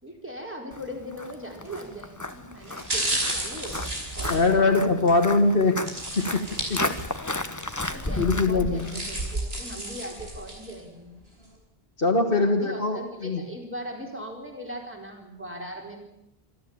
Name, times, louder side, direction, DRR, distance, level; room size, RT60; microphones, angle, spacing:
voice 1, 0.0-4.7 7.8-11.1 12.3-16.0, equal, 10° right, 1 dB, 4.4 m, -39 dB
Walk footsteps, 0.7-9.4, left 1 dB, 20° left, 1.2 m, -34 dB
sound 1, 1.7-1.9 2.6-5.2 5.9-7.3 7.7-7.8 8.6-10.8 11.2-11.3, right 1 dB, 80° right, 5.6 m, -32 dB
voice 2, 4.3-5.8 6.2-6.8 8.2-9.0 12.0-13.4, left 3 dB, 65° left, 1 dB, 2.0 m, -22 dB
26.5 x 13.0 x 8.7 m, 0.84 s
omnidirectional pair, 1.0 m